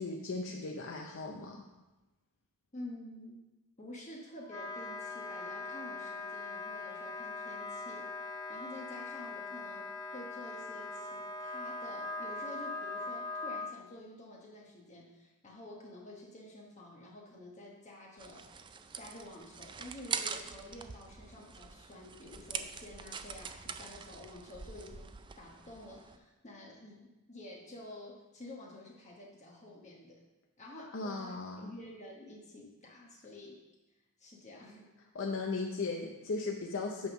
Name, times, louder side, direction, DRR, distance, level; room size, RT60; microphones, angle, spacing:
voice 1, 0.0-1.7 30.9-31.8 35.1-37.1, left 3 dB, 60° left, 1 dB, 0.6 m, -37 dB
voice 2, 2.7-3.4 3.8-18.5 18.9-30.2 30.6-33.6 34.2-34.9, left 1 dB, 35° left, -2 dB, 1.1 m, -50 dB
Wind instrument woodwind instrument, 4.4-13.7, left 3 dB, 15° left, 0.6 m, -41 dB
sound 1, 18.2-26.2, right 6 dB, 20° right, 0.3 m, -43 dB
8.6 x 3.6 x 6.0 m, 1.0 s
head